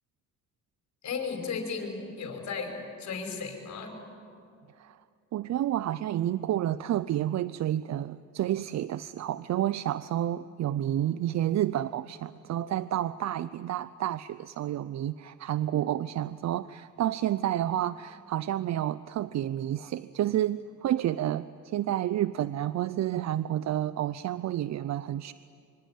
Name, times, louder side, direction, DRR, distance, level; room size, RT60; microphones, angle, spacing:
voice 1, 1.0-4.0, left 5 dB, 70° left, 4 dB, 5.6 m, -35 dB
voice 2, 5.3-25.3, right 12 dB, 60° right, 16 dB, 0.6 m, -30 dB
25.0 x 25.0 x 9.2 m, 2.4 s
cardioid pair, 90°, 30 cm